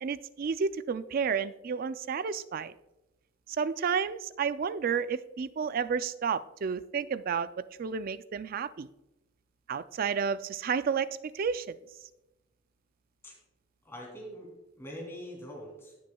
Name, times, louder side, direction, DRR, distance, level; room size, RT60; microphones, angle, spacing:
voice 1, 0.0-2.7 3.5-8.9 9.7-11.1 11.3-11.7, right 6 dB, 45° right, 14 dB, 0.3 m, -31 dB
voice 2, 13.8-15.9, equal, 15° left, -2 dB, 2.7 m, -43 dB
17.0 x 6.3 x 2.3 m, 0.96 s
head